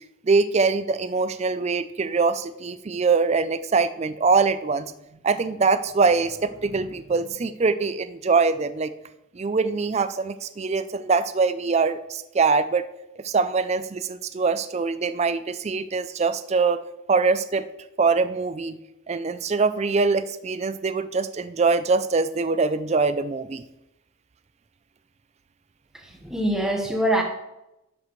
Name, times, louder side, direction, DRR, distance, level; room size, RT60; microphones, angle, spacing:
voice 1, 0.2-4.9 5.2-8.9 9.3-12.8 13.2-17.7 18.0-18.8 19.1-23.6, right 4 dB, 30° right, 13 dB, 0.4 m, -23 dB
voice 2, 26.0-27.2, right 1 dB, 5° right, 1 dB, 1.2 m, -24 dB
10.5 x 7.5 x 3.1 m, 0.90 s
head